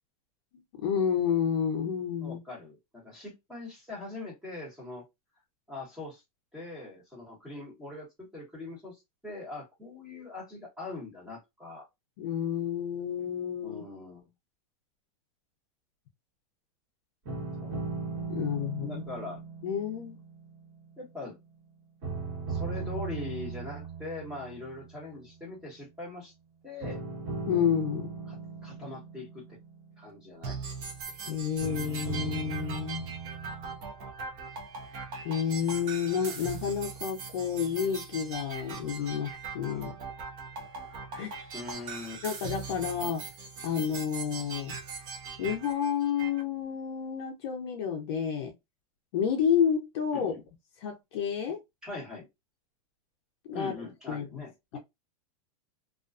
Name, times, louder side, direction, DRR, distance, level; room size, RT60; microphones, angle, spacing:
voice 1, 0.8-2.4 12.2-13.8 18.3-19.0 19.6-20.2 27.5-28.1 31.3-33.1 35.2-39.9 41.2-41.4 42.2-43.2 43.6-44.7 45.4-48.5 49.1-50.3 50.8-51.6 53.5-53.7 54.1-54.4 54.7-54.8, left 8 dB, 45° left, 0.6 m, -30 dB
voice 2, 2.2-5.0 5.7-6.2 6.5-11.9 13.6-14.2 17.6-17.8 18.8-19.4 21.0-21.4 22.5-26.3 26.6-27.0 28.3-28.4 28.6-29.6 30.0-30.6 41.5-42.2 50.1-50.4 51.8-52.3 53.5-54.8, left 2 dB, 5° right, 1.0 m, -42 dB
sound 1, 17.3-21.6 22.0-25.3 26.8-30.8 31.6-33.8, right 4 dB, 45° right, 1.3 m, -38 dB
sound 2, 30.4-46.4, right 5 dB, 25° right, 0.4 m, -40 dB
2.4 x 2.2 x 2.4 m
supercardioid pair, 170°, 19 cm